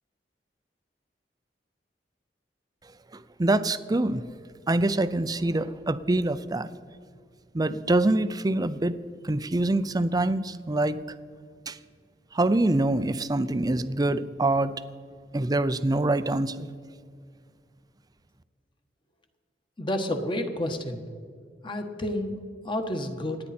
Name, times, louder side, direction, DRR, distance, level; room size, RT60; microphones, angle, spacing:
voice 1, 3.1-4.2 4.7-6.7 7.5-9.0 9.2-11.0 11.7-11.8 12.3-14.7 15.3-16.7, right 2 dB, 20° right, 13 dB, 0.5 m, -25 dB
voice 2, 19.8-21.0 21.6-22.4 22.6-23.4, left 1 dB, 30° left, 6 dB, 1.4 m, -30 dB
27.0 x 9.8 x 4.3 m, 2.1 s
head